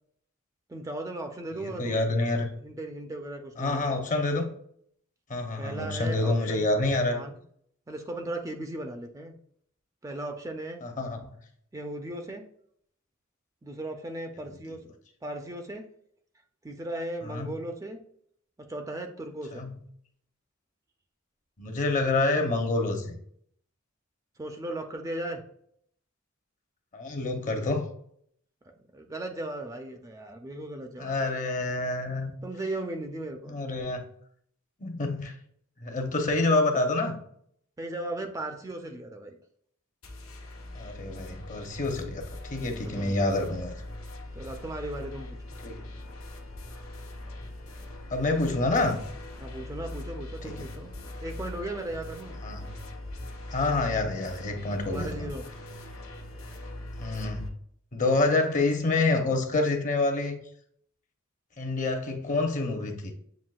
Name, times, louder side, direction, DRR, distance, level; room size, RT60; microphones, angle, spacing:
voice 1, 0.7-2.1 2.6-4.0 5.6-6.7 7.1-7.3 7.9-9.4 10.0-10.8 11.7-12.4 13.6-14.8 15.2-15.8 16.6-18.0 18.7-19.7 24.4-25.4 28.9-31.3 32.4-33.7 37.8-39.4 42.8-43.4 44.3-45.4 49.4-50.9 51.2-52.4 54.9-55.4, right 1 dB, 15° right, 5 dB, 0.4 m, -37 dB
voice 2, 1.5-2.5 3.6-4.5 5.3-7.2 10.8-11.3 17.2-17.6 19.5-19.8 21.6-23.2 26.9-27.9 31.0-32.3 33.5-34.1 34.8-35.3 35.8-37.2 40.7-43.7 45.6-45.8 48.1-49.0 50.4-50.6 52.4-52.6 53.5-55.3 57.0-57.4 57.9-60.4 61.6-63.1, left 2 dB, 40° left, 4 dB, 0.7 m, -27 dB
sound 1, 40.0-57.5, left 1 dB, 90° left, 1.0 m, -41 dB
7.3 x 2.6 x 2.3 m, 0.67 s
head